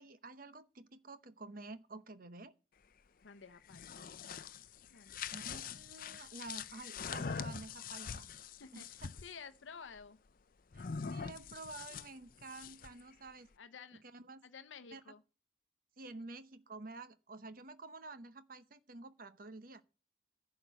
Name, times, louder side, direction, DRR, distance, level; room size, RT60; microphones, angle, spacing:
voice 1, 0.0-2.5 5.3-8.3 8.7-9.1 10.7-13.5 14.0-14.4 14.9-15.0 16.0-19.8, right 3 dB, 50° right, 0.9 m, -50 dB
voice 2, 3.2-4.6 4.9-5.8 6.9-7.1 8.6-10.2 13.6-14.0 14.4-15.2, left 6 dB, 85° left, 0.7 m, -54 dB
sound 1, 3.5-9.3 10.7-13.0, left 6 dB, 50° left, 0.5 m, -44 dB
11.0 x 5.9 x 8.1 m
head